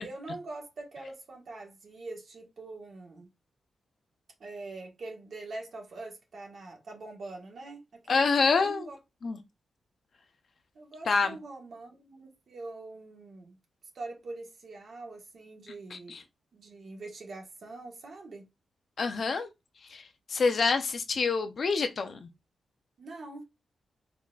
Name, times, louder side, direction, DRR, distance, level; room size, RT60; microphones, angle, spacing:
voice 1, 0.0-3.3 4.4-9.0 10.7-13.6 13.9-16.2 16.5-18.5 23.0-23.4, right 2 dB, 55° right, 1.8 m, -44 dB
voice 2, 8.1-8.9 9.2-9.4 11.1-11.4 15.9-16.2 19.0-19.5 19.9-22.3, left 4 dB, 50° left, 0.7 m, -27 dB
4.8 x 4.2 x 2.4 m
wide cardioid pair, 155°, 0 cm